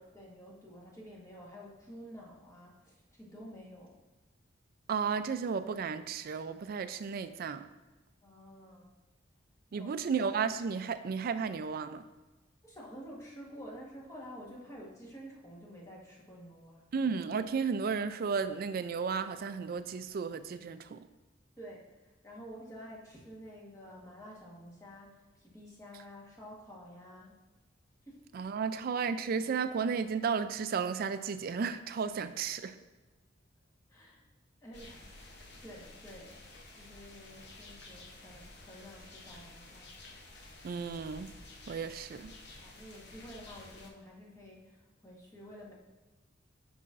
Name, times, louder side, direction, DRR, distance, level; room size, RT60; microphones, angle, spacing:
voice 1, 0.0-3.9 8.2-8.9 9.7-9.9 12.6-16.9 21.6-27.4 28.0-28.2 33.9-34.2 34.6-36.4 36.7-39.9 42.6-45.7, equal, 15° left, -4 dB, 1.3 m, -50 dB
voice 2, 4.9-7.7 9.7-12.0 16.9-21.1 28.3-32.8 40.6-41.3 41.7-42.3, right 5 dB, 50° right, 12 dB, 0.3 m, -33 dB
sound 1, 34.7-43.9, left 2 dB, 65° left, 0.8 m, -52 dB
7.8 x 5.5 x 2.5 m, 1.2 s
head